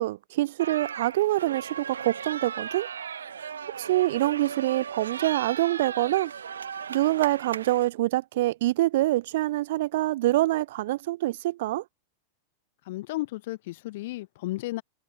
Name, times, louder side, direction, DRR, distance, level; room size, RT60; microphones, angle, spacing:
voice 1, 0.0-2.9 3.8-6.3 6.9-11.8, right 16 dB, 55° right, 0.3 m, -25 dB
sound 1, 0.6-7.9, right 7 dB, 70° right, 1.4 m, -37 dB
voice 2, 12.8-14.8, left 18 dB, 50° left, 1.2 m, -33 dB
figure-of-eight pair, 90°, 0 cm